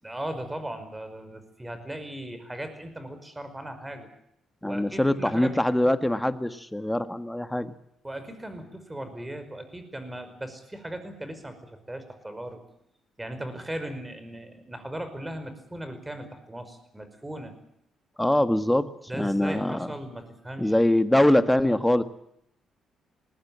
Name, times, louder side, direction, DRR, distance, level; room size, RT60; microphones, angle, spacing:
voice 1, 0.0-4.1 4.6-5.9 8.0-12.6 13.2-17.5 19.1-20.7, right 1 dB, 10° right, 9 dB, 5.2 m, -38 dB
voice 2, 4.6-7.7 18.2-19.9 20.6-22.0, left 1 dB, 5° left, 11 dB, 1.6 m, -23 dB
20.5 x 19.0 x 8.9 m, 0.74 s
cardioid pair, 90°, 0 cm